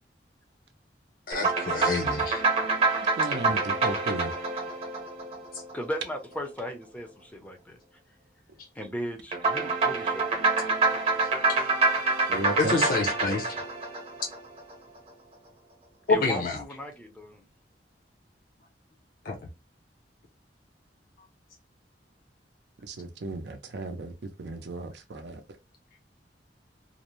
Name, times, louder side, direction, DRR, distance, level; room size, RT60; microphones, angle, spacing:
voice 1, 1.3-2.4 11.6-11.7 12.6-13.5 16.1-16.6 19.2-19.4, left 3 dB, 55° left, 0.6 m, -27 dB
sound 1, 1.3-6.0 9.3-14.7, right 3 dB, 35° right, 0.9 m, -26 dB
voice 2, 3.2-4.3 12.3-12.8 22.9-25.4, right 2 dB, 70° right, 0.5 m, -35 dB
voice 3, 5.7-7.8 8.7-10.4 16.1-17.4, equal, 10° left, 0.5 m, -37 dB
2.5 x 2.0 x 2.9 m
head